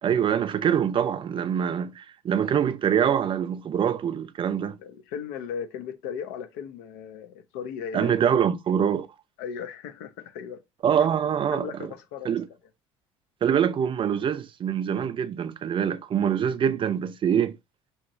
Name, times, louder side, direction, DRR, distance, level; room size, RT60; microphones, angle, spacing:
voice 1, 0.0-4.8 7.9-9.1 10.8-11.9 12.2-12.5 13.4-17.6, right 8 dB, 35° right, 0.4 m, -24 dB
voice 2, 4.8-8.1 9.4-10.6 11.0-11.1 11.5-12.3, left 7 dB, 70° left, 0.6 m, -36 dB
2.9 x 2.9 x 2.6 m
hypercardioid pair, 65°, 15 cm